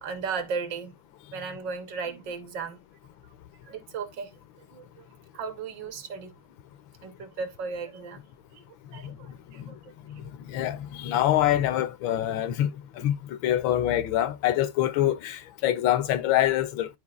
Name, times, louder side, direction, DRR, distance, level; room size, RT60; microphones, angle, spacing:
voice 1, 0.0-0.9 1.3-2.8 3.7-4.3 4.6-5.0 5.3-6.3 7.0-8.2 8.5-8.6 8.9-9.8 13.6-13.7, right 5 dB, 65° right, 1.5 m, -35 dB
voice 2, 10.5-12.7 13.0-16.9, left 12 dB, 75° left, 1.3 m, -25 dB
12.0 x 4.5 x 2.3 m
omnidirectional pair, 2.3 m